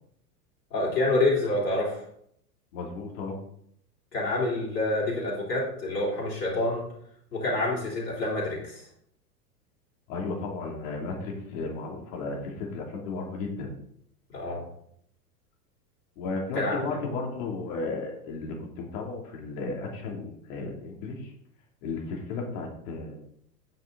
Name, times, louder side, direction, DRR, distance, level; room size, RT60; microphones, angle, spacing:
voice 1, 0.7-2.0 4.1-6.8 7.3-8.8 14.3-14.6 16.5-16.8, left 2 dB, 80° left, -6 dB, 3.9 m, -27 dB
voice 2, 2.7-3.4 10.1-13.7 16.2-21.3 21.8-23.2, left 3 dB, 55° left, 0 dB, 3.1 m, -34 dB
9.2 x 7.8 x 4.1 m, 0.68 s
hypercardioid pair, 100°, 49 cm